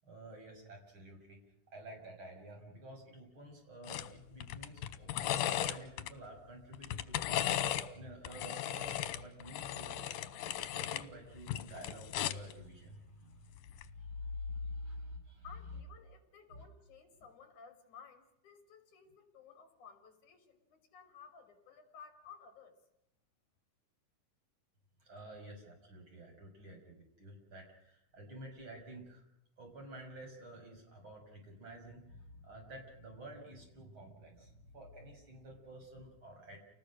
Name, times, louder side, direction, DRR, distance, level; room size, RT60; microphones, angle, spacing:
voice 1, 0.0-10.2 10.6-15.5 16.5-16.6 25.0-29.2 29.6-36.6, left 1 dB, 35° right, 1 dB, 7.1 m, -49 dB
sound 1, 3.9-4.1 4.4-6.1 6.7-7.9 8.2-11.0 11.4-12.5 13.7-13.9, left 12 dB, 90° left, 2.7 m, -36 dB
voice 2, 15.4-22.8, left 6 dB, 65° left, 7 dB, 4.9 m, -56 dB
29.5 x 19.5 x 6.4 m, 0.82 s
omnidirectional pair, 3.8 m